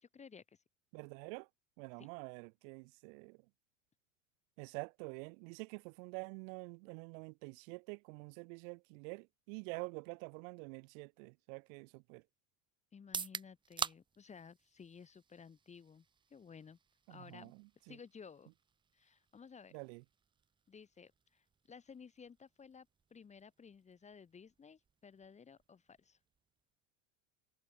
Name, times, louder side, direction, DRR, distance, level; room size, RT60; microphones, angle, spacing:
voice 1, 0.0-0.6 2.0-2.1 12.9-16.0 16.3-16.8 17.1-17.5 17.9-18.5 18.9-19.8 20.7-26.2, left 6 dB, 15° left, 2.3 m, -56 dB
voice 2, 0.9-1.5 1.8-3.4 4.6-12.2 17.1-18.0 19.7-20.0, right 38 dB, 60° right, 3.3 m, -47 dB
sound 1, 13.0-26.8, right 6 dB, 10° right, 0.6 m, -50 dB
cardioid pair, 165°, 45 cm